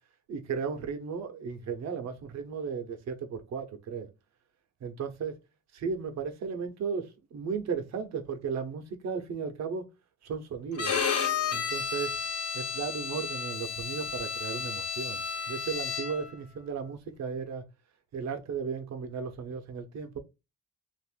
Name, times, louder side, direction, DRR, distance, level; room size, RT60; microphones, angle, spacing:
voice 1, 0.3-4.1 4.8-5.4 5.7-9.9 10.2-10.9 11.5-12.3 12.5-17.6 18.1-20.2, right 6 dB, 60° right, 0.9 m, -35 dB
Bowed string instrument, 10.8-16.3, left 6 dB, 50° left, 0.9 m, -32 dB
2.6 x 2.5 x 3.6 m
cardioid pair, 90°, 30 cm